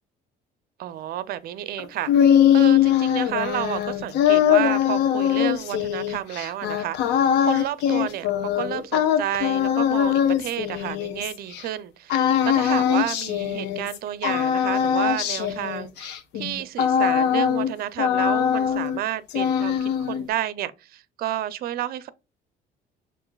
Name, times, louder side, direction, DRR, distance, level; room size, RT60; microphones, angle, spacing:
voice 1, 0.8-22.1, right 12 dB, 65° right, 0.5 m, -31 dB
sound 1, 1.8-11.6 12.1-14.0 14.2-17.7 18.0-19.0 19.3-20.3, left 9 dB, 90° left, 0.6 m, -21 dB
6.1 x 2.5 x 2.3 m
cardioid pair, 110°, 17 cm